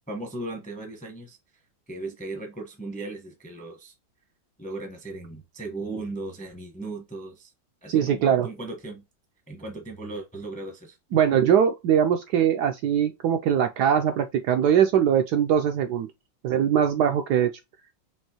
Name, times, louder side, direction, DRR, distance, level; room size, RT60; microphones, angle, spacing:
voice 1, 0.1-1.4 1.9-3.9 4.6-7.5 7.8-9.0 9.5-11.0, right 2 dB, 5° left, 0.6 m, -37 dB
voice 2, 7.9-8.5 11.1-16.1 16.4-17.5, right 9 dB, 70° right, 1.0 m, -21 dB
5.3 x 3.1 x 2.9 m
omnidirectional pair, 2.1 m